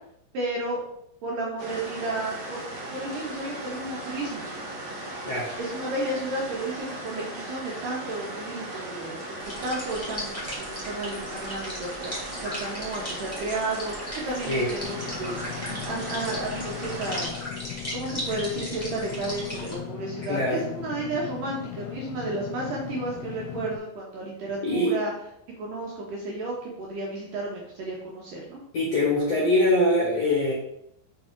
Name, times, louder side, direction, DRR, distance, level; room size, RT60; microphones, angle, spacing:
voice 1, 0.3-0.8 1.2-4.5 5.6-9.4 9.6-15.3 15.7-17.4 17.9-25.1 25.6-28.6, right 2 dB, 70° right, -3 dB, 2.2 m, -32 dB
sound 1, 1.6-17.3, right 1 dB, 85° right, 1.5 m, -37 dB
sound 2, 9.4-19.7, equal, 10° left, 1.2 m, -37 dB
Engine / Mechanisms, 14.8-23.8, left 12 dB, 85° left, 2.6 m, -38 dB
voice 2, 20.3-20.6 24.6-24.9 28.7-30.5, left 1 dB, 65° left, -4 dB, 1.6 m, -23 dB
5.7 x 5.3 x 3.7 m, 0.75 s
omnidirectional pair, 4.9 m